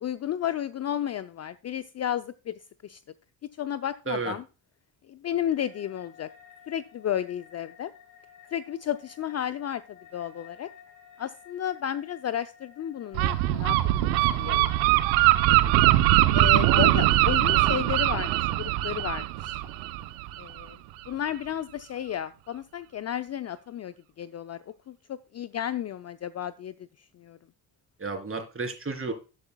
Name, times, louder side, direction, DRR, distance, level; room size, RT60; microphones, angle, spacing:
voice 1, 0.0-3.0 3.6-4.4 5.1-6.3 6.7-7.9 8.5-10.7 11.2-13.8 14.0-14.1 14.4-14.6 16.3-19.6 20.4-20.8 21.1-24.6 24.9-26.7 27.1-27.4, left 10 dB, 35° left, 14 dB, 0.5 m, -33 dB
sound 1, 5.5-16.0, left 8 dB, 80° left, 4.6 m, -54 dB
Gull seagull, 13.1-20.7, right 16 dB, 75° right, 0.8 m, -22 dB
voice 2, 15.5-15.8 28.0-29.1, right 4 dB, 25° right, 5 dB, 3.3 m, -32 dB
12.5 x 8.3 x 2.3 m, 0.32 s
hypercardioid pair, 55°, 47 cm